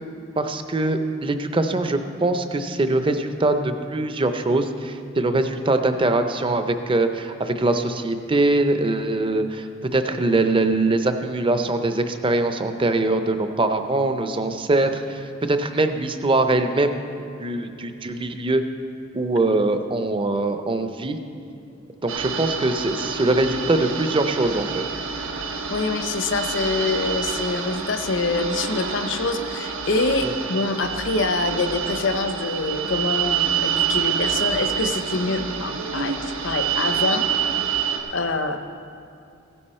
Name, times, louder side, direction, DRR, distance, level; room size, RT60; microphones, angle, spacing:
voice 1, 0.4-16.9 17.4-18.6 19.1-21.2 22.0-24.8 30.2-30.3, right 2 dB, 25° right, 8 dB, 0.6 m, -22 dB
sound 1, 22.1-38.0, right 7 dB, 85° right, 1.2 m, -27 dB
voice 2, 25.7-36.2 36.4-37.3 38.1-38.6, left 3 dB, 65° left, 8 dB, 0.8 m, -25 dB
16.0 x 10.0 x 4.3 m, 2.7 s
head